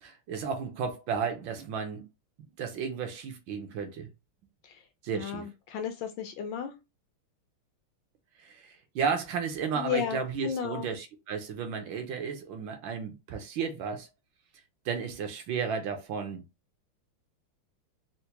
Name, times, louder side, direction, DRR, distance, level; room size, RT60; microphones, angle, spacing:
voice 1, 0.0-2.1 2.6-4.1 5.0-5.5 8.4-14.1 14.8-16.4, right 6 dB, 75° right, 1.3 m, -33 dB
voice 2, 5.1-6.7 9.8-10.9, left 8 dB, 75° left, 1.1 m, -34 dB
4.4 x 2.1 x 2.8 m
omnidirectional pair, 2.3 m